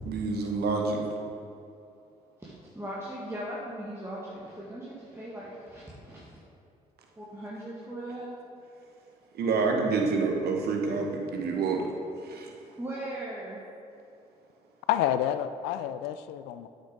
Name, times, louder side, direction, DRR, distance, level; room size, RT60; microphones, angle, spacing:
voice 1, 0.1-1.0 9.3-11.9 12.2-12.5, right 4 dB, 65° right, 2 dB, 1.2 m, -27 dB
voice 2, 2.4-6.3 7.2-8.3 12.8-13.6, right 1 dB, 15° right, -7 dB, 1.9 m, -39 dB
voice 3, 14.9-16.7, left 11 dB, 80° left, 12 dB, 0.4 m, -28 dB
8.0 x 6.0 x 5.1 m, 2.6 s
hypercardioid pair, 45°, 17 cm